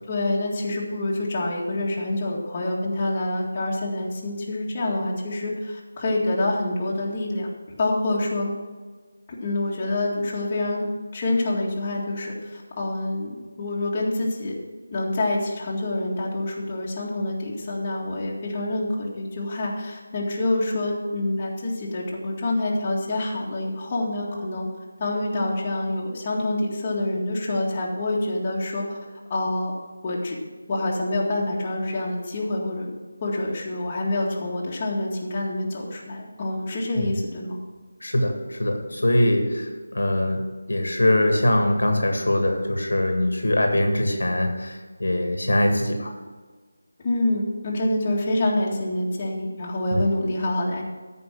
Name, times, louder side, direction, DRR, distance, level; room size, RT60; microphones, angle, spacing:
voice 1, 0.1-7.5 7.8-8.5 9.4-10.8 11.1-14.5 14.9-24.7 25.0-29.0 29.3-29.7 30.0-30.4 30.7-32.9 33.2-37.6 47.0-50.8, left 1 dB, 25° left, -4 dB, 1.9 m, -26 dB
voice 2, 38.0-40.4 40.7-46.1 49.9-50.0, left 1 dB, 70° left, 3 dB, 1.7 m, -22 dB
13.5 x 5.3 x 6.1 m, 1.4 s
figure-of-eight pair, 160°, 0 cm